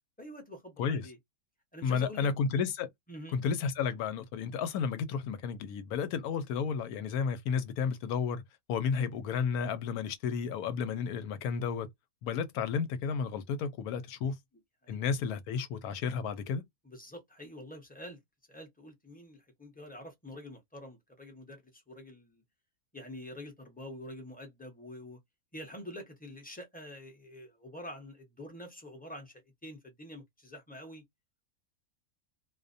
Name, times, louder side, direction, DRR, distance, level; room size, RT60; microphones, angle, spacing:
voice 1, 0.2-1.2 1.7-2.3 3.1-3.4 14.2-14.3 14.8-15.0 16.8-18.2 18.5-22.4 22.9-25.2 25.5-31.0, left 1 dB, 10° left, 0.5 m, -46 dB
voice 2, 1.8-2.9 3.3-8.4 8.7-11.9 12.2-14.4 14.9-16.6, left 6 dB, 85° left, 1.1 m, -32 dB
2.5 x 2.1 x 2.5 m
omnidirectional pair, 1.6 m